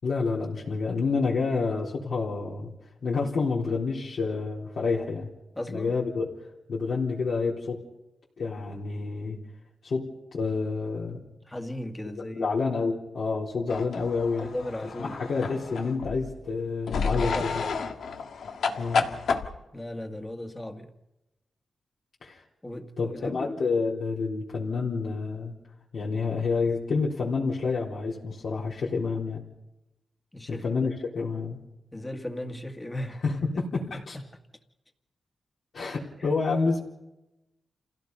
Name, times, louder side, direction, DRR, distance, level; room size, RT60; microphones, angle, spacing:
voice 1, 0.0-2.7 3.0-5.3 5.7-6.3 6.7-7.8 8.4-9.4 9.8-11.2 12.3-14.5 15.0-17.6 18.8-19.1 22.2-22.4 23.0-25.6 25.9-29.4 30.5-31.6 33.2-34.2 35.7-36.8, left 4 dB, 65° left, -5 dB, 4.0 m, -28 dB
voice 2, 5.6-5.9 11.5-12.6 14.4-15.3 17.1-18.0 19.7-20.9 22.6-23.6 30.3-30.9 31.9-33.2 33.5-33.8 34.1-34.2 36.2-36.3, left 1 dB, 15° left, 5 dB, 1.9 m, -37 dB
sound 1, 13.7-16.3 16.9-19.5, left 5 dB, 85° left, 1.8 m, -30 dB
29.0 x 16.5 x 5.5 m, 0.94 s
wide cardioid pair, 120°, 0 cm